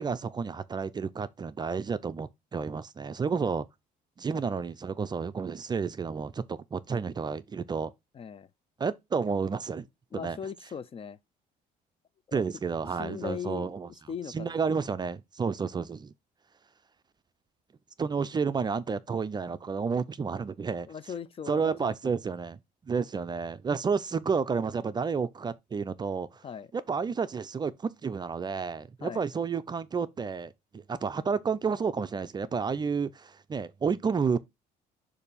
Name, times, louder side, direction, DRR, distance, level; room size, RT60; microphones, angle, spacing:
voice 1, 0.0-3.7 4.2-7.9 8.8-9.9 10.1-10.4 12.3-13.9 14.3-16.1 18.0-20.9 21.5-22.6 22.9-26.4 26.7-34.4, right 5 dB, 25° right, 0.4 m, -31 dB
voice 2, 8.1-8.5 10.1-11.2 12.3-12.4 13.0-13.7 14.1-14.5 20.9-22.2 26.4-26.7 29.0-29.3, left 7 dB, 35° left, 0.4 m, -39 dB
6.6 x 2.7 x 5.4 m
cardioid pair, 110°, 17 cm